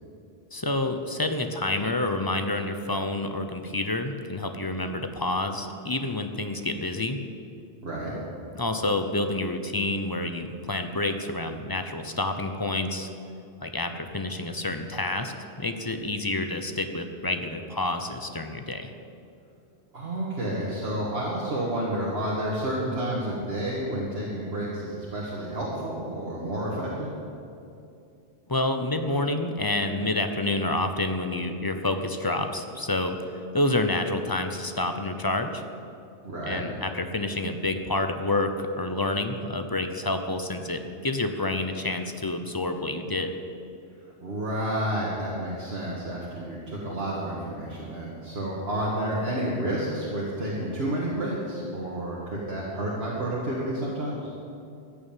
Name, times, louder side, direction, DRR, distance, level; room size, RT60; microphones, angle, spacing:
voice 1, 0.5-7.2 8.5-13.1 13.6-18.9 28.5-35.6 36.5-43.3, left 2 dB, 25° left, 7 dB, 0.7 m, -28 dB
voice 2, 7.8-8.1 19.9-27.1 36.2-36.6 44.2-54.3, right 1 dB, 60° right, -5 dB, 2.0 m, -30 dB
14.5 x 7.0 x 9.1 m, 2.6 s
omnidirectional pair, 1.2 m